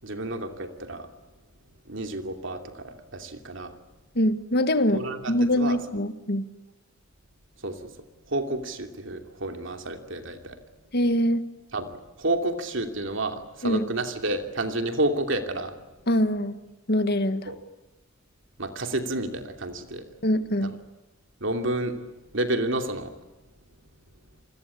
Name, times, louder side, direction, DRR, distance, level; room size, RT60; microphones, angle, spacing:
voice 1, 0.0-1.1 1.8-3.8 4.9-5.8 7.6-8.0 8.2-10.6 11.7-15.7 17.5-17.6 18.6-20.2 20.6-20.7 21.4-22.0 22.3-23.1, right 2 dB, 65° right, 6 dB, 2.9 m, -30 dB
voice 2, 4.2-5.0 5.3-6.4 10.9-11.4 13.6-13.8 16.1-16.5 16.9-17.5 20.2-20.7, left 1 dB, 55° left, 11 dB, 1.7 m, -23 dB
28.0 x 21.0 x 8.5 m, 1.1 s
head